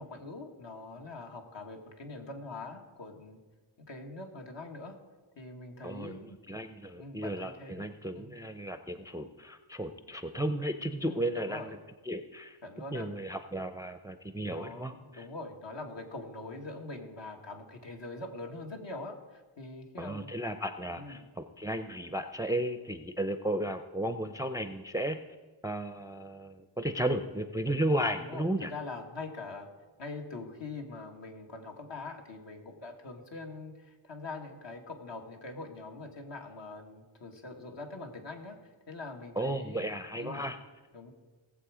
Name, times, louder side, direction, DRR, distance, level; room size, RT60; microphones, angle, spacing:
voice 1, 0.0-3.4 3.9-5.0 5.4-6.4 7.0-7.9 8.1-8.3 11.0-11.7 12.6-13.1 14.5-20.4 21.0-21.3 28.1-29.7 30.0-38.6 38.9-39.9 40.1-40.5 40.9-41.1, left 3 dB, 60° left, 2 dB, 1.9 m, -43 dB
voice 2, 5.8-11.8 12.1-12.6 12.9-15.2 20.0-25.2 25.6-28.7 39.4-40.6, right 1 dB, 5° right, 9 dB, 0.5 m, -34 dB
18.0 x 7.5 x 4.9 m, 1.3 s
wide cardioid pair, 90°, 50 cm